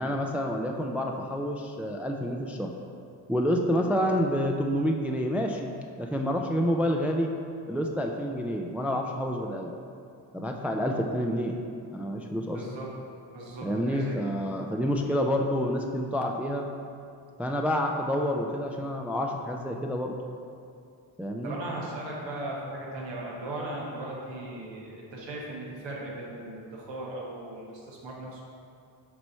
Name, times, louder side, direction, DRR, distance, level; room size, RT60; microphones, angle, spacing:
voice 1, 0.0-2.7 3.3-7.3 7.7-9.7 10.3-11.6 11.9-12.6 13.6-16.7 17.4-20.2 21.2-21.6, equal, 5° right, 2 dB, 0.3 m, -28 dB
voice 2, 12.5-12.9 13.3-14.2 21.4-28.4, right 1 dB, 85° right, -4 dB, 1.4 m, -37 dB
6.1 x 3.0 x 5.5 m, 2.5 s
cardioid pair, 70°, 43 cm